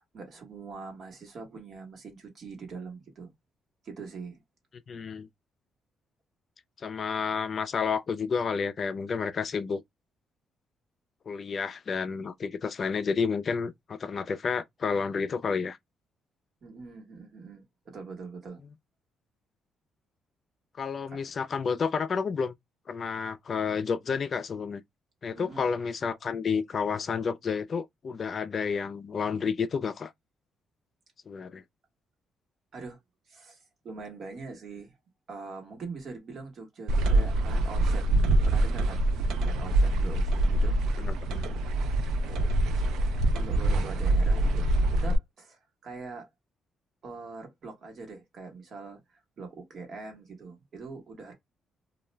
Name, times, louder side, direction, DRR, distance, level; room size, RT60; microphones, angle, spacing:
voice 1, 0.0-3.3 3.8-4.4 16.6-18.6 25.4-25.6 32.7-33.0 33.3-34.9 35.3-39.1 39.4-40.7 42.2-42.9 43.3-44.6 44.9-46.3 47.0-51.3, right 4 dB, 55° right, 1.1 m, -43 dB
voice 2, 4.9-5.3 6.8-9.8 11.3-15.8 20.8-22.5 22.9-24.8 25.2-30.1 31.3-31.6 41.0-41.5, left 5 dB, 45° left, 0.3 m, -30 dB
sound 1, 36.9-45.2, right 1 dB, 85° right, 0.4 m, -25 dB
2.3 x 2.1 x 3.1 m
cardioid pair, 90°, 0 cm